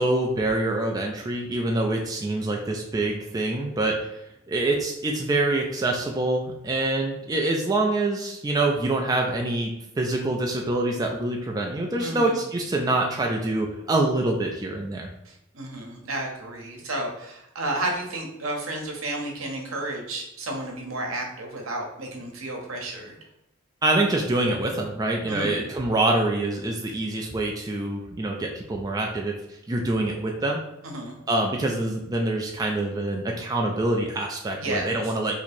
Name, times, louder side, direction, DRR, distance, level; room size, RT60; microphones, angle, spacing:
voice 1, 0.0-4.2 4.5-9.7 10.0-15.1 23.8-29.3 29.7-30.6 31.3-35.4, right 2 dB, 20° right, 0 dB, 0.3 m, -25 dB
voice 2, 12.0-12.4 15.2-23.1 25.3-25.6 30.8-31.2 34.6-35.1, right 1 dB, 75° right, 1 dB, 0.9 m, -32 dB
2.9 x 2.8 x 4.2 m, 0.83 s
head